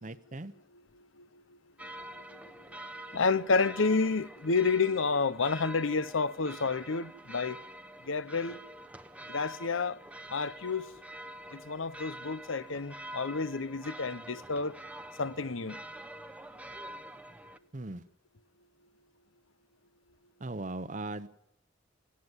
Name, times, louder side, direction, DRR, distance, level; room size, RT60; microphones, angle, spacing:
voice 1, 0.0-0.5 17.7-18.0 20.4-21.3, right 2 dB, 40° right, 0.8 m, -38 dB
sound 1, 1.8-17.6, right 1 dB, 5° right, 0.9 m, -46 dB
voice 2, 3.1-7.6 8.1-8.6 9.3-10.0 10.3-10.9 11.5-14.8 15.2-15.8, left 4 dB, 80° left, 0.8 m, -30 dB
18.5 x 15.0 x 9.7 m
head